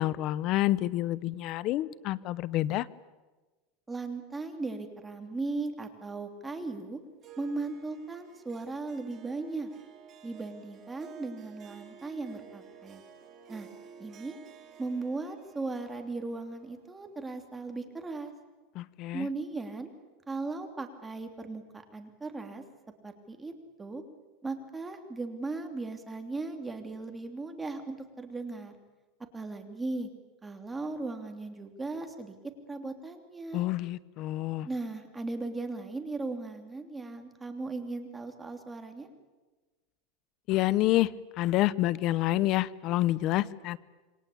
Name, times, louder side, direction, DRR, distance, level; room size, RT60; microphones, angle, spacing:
voice 1, 0.0-2.9 18.7-19.3 33.5-34.7 40.5-41.1 41.4-43.8, left 15 dB, 45° left, 19 dB, 0.9 m, -28 dB
voice 2, 3.9-7.0 7.4-9.7 10.2-13.0 13.5-13.7 14.0-14.4 14.8-18.3 19.1-19.9 20.3-21.6 21.9-22.6 23.0-24.0 24.4-28.7 29.3-30.1 30.4-32.3 32.7-33.6 34.6-39.1, right 3 dB, 10° right, 5 dB, 3.0 m, -37 dB
Harp, 7.2-17.8, right 7 dB, 30° right, 3.7 m, -53 dB
27.5 x 23.0 x 8.7 m, 1.2 s
supercardioid pair, 145°, 0 cm